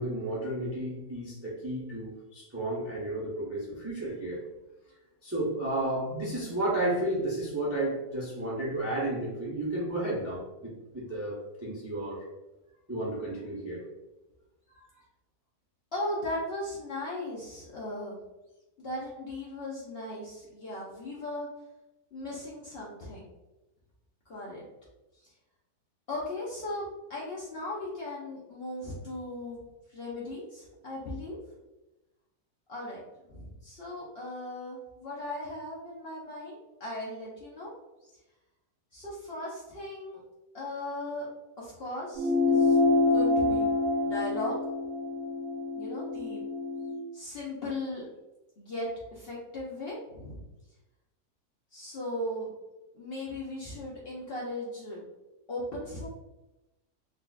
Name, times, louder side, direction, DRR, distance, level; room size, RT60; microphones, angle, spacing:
voice 1, 0.0-4.4 5.2-12.2 12.9-13.8, right 1 dB, 15° right, -7 dB, 0.4 m, -32 dB
voice 2, 15.9-18.2 18.8-21.5 22.1-23.3 24.3-24.6 25.1-25.3 26.1-29.6 29.9-31.4 32.7-37.7 38.9-40.2 40.5-41.3 41.6-42.8 43.1-43.7 44.0-44.6 45.7-46.4 47.1-48.1 48.6-50.4 51.7-52.5 52.9-55.0 55.5-56.1, left 1 dB, 55° left, -6 dB, 0.7 m, -37 dB
sound 1, 42.2-47.0, left 3 dB, 85° right, 1.1 m, -26 dB
3.9 x 2.3 x 2.3 m, 1.0 s
omnidirectional pair, 1.6 m